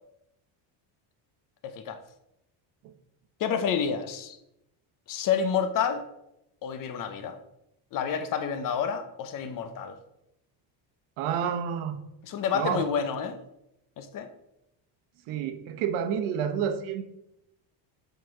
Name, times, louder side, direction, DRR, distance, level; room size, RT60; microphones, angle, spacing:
voice 1, 1.6-2.0 3.4-4.4 5.1-6.0 6.6-7.4 7.9-10.0 12.2-13.4 14.0-14.3, left 7 dB, 40° left, 9 dB, 0.6 m, -29 dB
voice 2, 11.2-12.0 12.5-12.9 15.3-17.0, right 8 dB, 85° right, 8 dB, 1.0 m, -29 dB
7.6 x 4.0 x 4.7 m, 0.85 s
cardioid pair, 160°, 49 cm